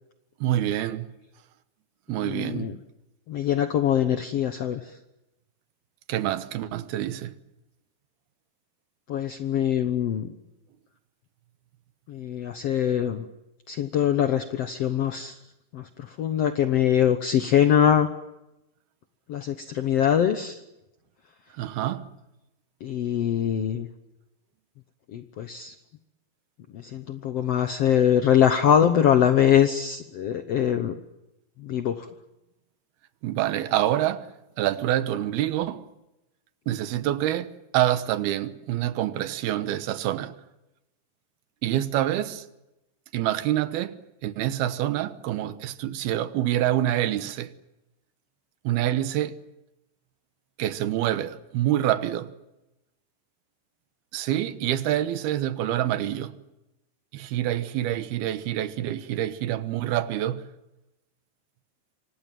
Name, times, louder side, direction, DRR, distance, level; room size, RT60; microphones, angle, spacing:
voice 1, 0.4-1.1 2.1-2.7 6.1-7.4 21.5-22.2 33.2-34.3 34.6-35.8 36.7-40.4 41.6-42.5 43.1-47.5 48.6-49.4 50.6-52.3 54.1-56.4 57.1-60.5, right 12 dB, 90° right, 3.1 m, -26 dB
voice 2, 2.1-2.7 3.3-4.9 9.1-10.3 12.1-13.3 13.7-15.4 15.7-18.1 19.3-20.6 22.8-23.9 25.1-25.7 26.7-31.0 31.6-32.1, left 9 dB, 75° left, 1.4 m, -23 dB
27.0 x 25.0 x 7.7 m
omnidirectional pair, 4.3 m